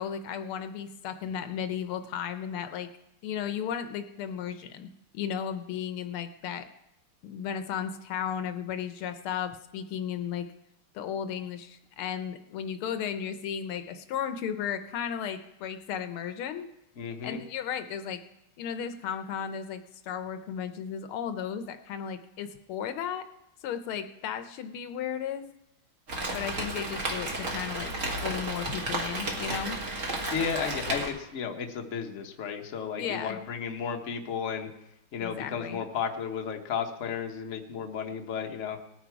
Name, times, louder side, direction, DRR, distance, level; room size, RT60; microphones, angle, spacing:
voice 1, 0.0-2.9 3.2-4.9 5.1-6.6 7.2-10.5 10.9-16.7 17.2-18.2 18.6-23.2 23.6-25.4 26.3-27.9 28.2-29.8 33.0-33.4 35.2-35.8, left 8 dB, 80° left, 9 dB, 1.6 m, -34 dB
voice 2, 17.0-17.4 30.3-34.7 35.1-38.8, left 7 dB, 45° left, 3 dB, 1.1 m, -33 dB
Rain, 26.1-31.1, right 2 dB, 40° right, 2.1 m, -33 dB
19.0 x 9.2 x 4.7 m, 0.87 s
omnidirectional pair, 2.4 m